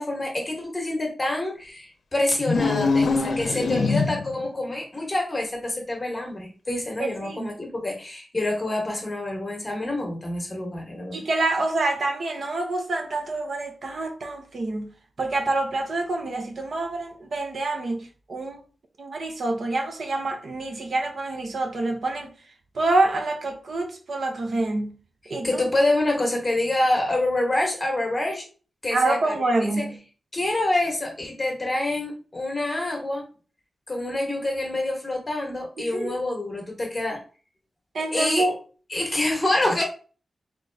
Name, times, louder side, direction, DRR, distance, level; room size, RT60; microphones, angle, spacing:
voice 1, 0.0-11.3 25.4-28.5 28.8-29.9 30.3-33.2 33.9-37.2 38.1-38.5 38.9-39.8, left 1 dB, 20° left, 1.2 m, -26 dB
sound 1, 2.4-4.4, left 4 dB, 75° left, 0.6 m, -23 dB
voice 2, 7.0-7.5 11.1-14.9 15.2-18.6 19.0-22.3 22.7-25.0 25.3-25.6 28.9-30.0 35.8-36.2 37.9-38.5, right 2 dB, 55° right, 0.8 m, -26 dB
3.9 x 3.1 x 3.4 m
wide cardioid pair, 150°, 0 cm